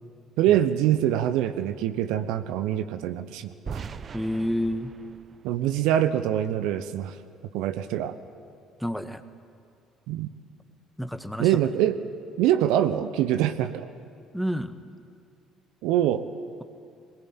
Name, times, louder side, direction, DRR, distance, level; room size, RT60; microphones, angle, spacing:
voice 1, 0.4-3.8 5.4-7.1 7.5-8.1 10.1-10.3 11.4-12.0 12.4-13.9 15.8-16.2, right 11 dB, 70° right, 11 dB, 0.9 m, -24 dB
sound 1, 3.7-6.6, right 5 dB, 40° right, 0.9 m, -41 dB
voice 2, 4.1-4.9 8.8-9.2 11.0-11.5 14.3-14.7, equal, ahead, 9 dB, 1.5 m, -29 dB
21.5 x 18.5 x 8.9 m, 2.3 s
hypercardioid pair, 55°, 0 cm